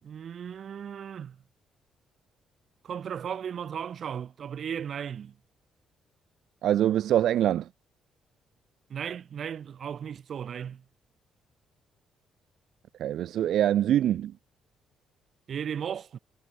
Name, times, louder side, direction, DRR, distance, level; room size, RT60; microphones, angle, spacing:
voice 1, 0.0-1.4 2.8-5.3 8.9-10.8 15.5-16.2, right 8 dB, 55° right, 3.1 m, -36 dB
voice 2, 6.6-7.7 13.0-14.3, right 11 dB, 75° right, 0.8 m, -24 dB
cardioid pair, 90°, 0 cm